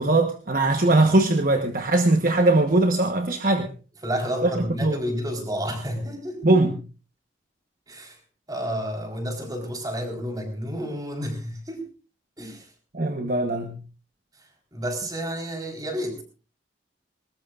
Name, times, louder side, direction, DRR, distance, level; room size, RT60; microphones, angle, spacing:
voice 1, 0.0-3.7 4.4-5.0 6.4-6.7 12.9-13.8, right 2 dB, 50° right, 5 dB, 1.1 m, -21 dB
voice 2, 4.0-6.4 7.9-8.2 8.5-11.8 12.4-12.7 14.4-16.2, equal, 20° right, 3 dB, 4.2 m, -30 dB
20.5 x 20.0 x 2.5 m, 0.35 s
head